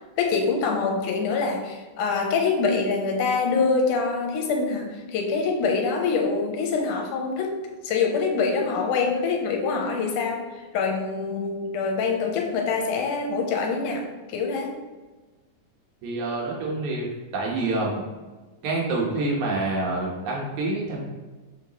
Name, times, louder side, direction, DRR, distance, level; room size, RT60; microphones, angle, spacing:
voice 1, 0.2-7.5 7.8-10.5 10.7-14.7, left 4 dB, 90° left, 1 dB, 2.4 m, -25 dB
voice 2, 16.0-17.1 17.3-18.0 18.6-21.0, right 2 dB, 70° right, -3 dB, 2.6 m, -27 dB
6.5 x 4.9 x 3.1 m, 1.3 s
omnidirectional pair, 3.5 m